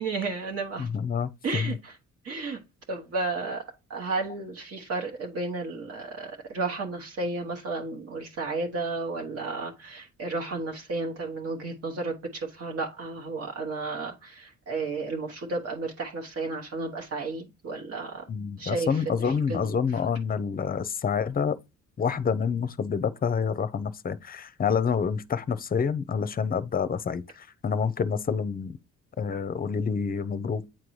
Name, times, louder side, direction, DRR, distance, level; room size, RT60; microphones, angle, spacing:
voice 1, 0.0-0.9 1.4-2.0 2.2-2.6 2.9-3.6 3.9-18.3 18.6-19.7, right 3 dB, 50° right, 1.3 m, -33 dB
voice 2, 0.8-1.8 18.3-21.6 22.0-28.8 29.2-30.7, left 6 dB, 30° left, 0.6 m, -28 dB
8.9 x 3.8 x 3.2 m
cardioid pair, 90°, 30 cm